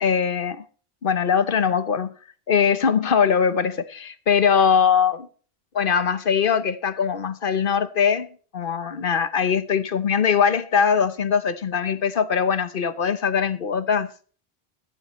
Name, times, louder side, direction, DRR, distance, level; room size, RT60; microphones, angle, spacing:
voice 1, 0.0-0.6 1.0-2.1 2.5-5.3 5.7-8.3 8.5-14.1, left 7 dB, 60° left, 1.0 m, -21 dB
15.0 x 14.0 x 3.1 m
omnidirectional pair, 1.0 m